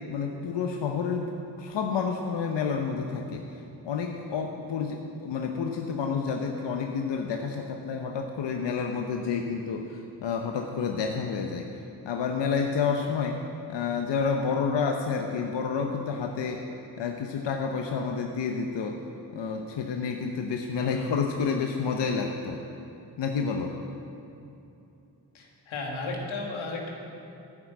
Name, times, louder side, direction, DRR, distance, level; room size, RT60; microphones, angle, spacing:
voice 1, 0.1-3.4 3.8-11.7 12.0-13.4 13.7-16.7 17.0-19.0 19.3-22.6 23.2-23.7, left 5 dB, 65° left, 3 dB, 0.9 m, -29 dB
voice 2, 20.8-21.1 25.3-26.9, left 3 dB, 90° left, 0 dB, 1.6 m, -34 dB
10.5 x 6.0 x 8.2 m, 2.7 s
supercardioid pair, 45°, 46 cm